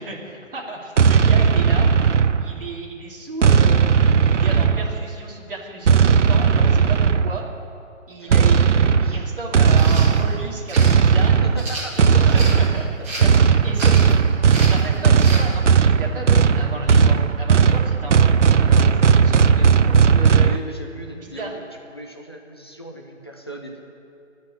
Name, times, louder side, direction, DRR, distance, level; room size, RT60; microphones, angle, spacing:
voice 1, 0.0-1.9 2.4-3.8 4.3-7.4 8.1-8.6 9.0-11.4 12.0-12.9 13.2-13.3 13.6-14.4 14.7-20.6 21.2-21.6, right 2 dB, 45° right, -2 dB, 2.8 m, -33 dB
sound 1, 1.0-2.7 3.4-5.1 5.9-7.5 8.3-20.6, right 6 dB, 65° right, 0.6 m, -16 dB
sound 2, 9.7-10.1 10.7-10.9 11.6-12.6 13.0-13.4 13.8-14.1 14.5-14.8 15.2-15.4, right 1 dB, 10° right, 1.8 m, -32 dB
voice 2, 11.4-12.9 20.4-21.6 21.9-23.8, right 1 dB, 20° left, 1 dB, 0.7 m, -37 dB
17.5 x 6.5 x 9.8 m, 2.6 s
hypercardioid pair, 170°, 39 cm